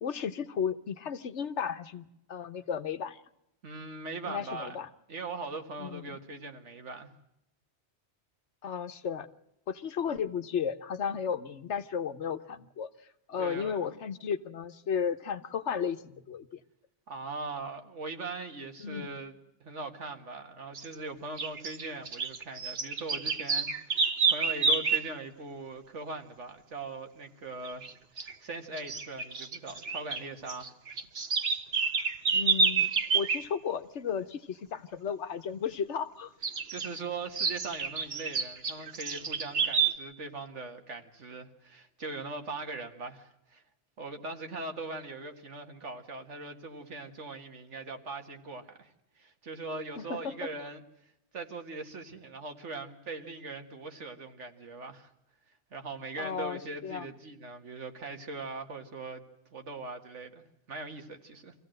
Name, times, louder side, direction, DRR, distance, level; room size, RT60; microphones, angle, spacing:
voice 1, 0.0-3.2 4.3-4.9 5.8-6.1 8.6-9.3 9.7-12.9 13.3-16.6 18.8-19.1 32.3-36.3 50.0-50.5 56.2-57.1, left 7 dB, 75° left, 11 dB, 1.3 m, -34 dB
voice 2, 3.6-4.8 5.1-7.1 13.4-13.9 17.1-19.3 19.6-27.8 28.2-30.7 36.7-43.6 44.0-50.8 51.3-55.1 55.7-59.2 59.5-60.4 60.7-61.5, right 3 dB, 80° right, 6 dB, 2.0 m, -40 dB
sound 1, 20.8-20.9 21.4-25.1 27.7-27.9 28.2-28.3 28.8-30.2 30.5-33.4 36.4-36.9 37.4-39.9, right 5 dB, 60° right, 1.4 m, -29 dB
25.0 x 16.0 x 7.7 m, 0.87 s
omnidirectional pair, 1.2 m